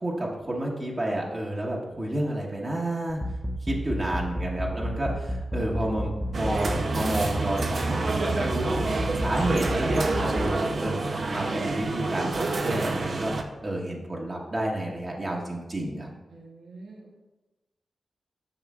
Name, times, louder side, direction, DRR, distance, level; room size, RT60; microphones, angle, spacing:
voice 1, 0.0-3.2 3.6-8.9 9.2-11.0 11.3-13.3 13.6-16.1, right 1 dB, 40° right, -3 dB, 1.2 m, -30 dB
sound 1, 3.1-10.5, equal, ahead, 0.5 m, -30 dB
sound 2, 6.3-13.4, right 3 dB, 65° right, 0.6 m, -28 dB
voice 2, 16.3-17.2, right 2 dB, 85° right, 0 dB, 0.9 m, -46 dB
7.8 x 5.5 x 2.4 m, 1.1 s
cardioid pair, 50°, 0 cm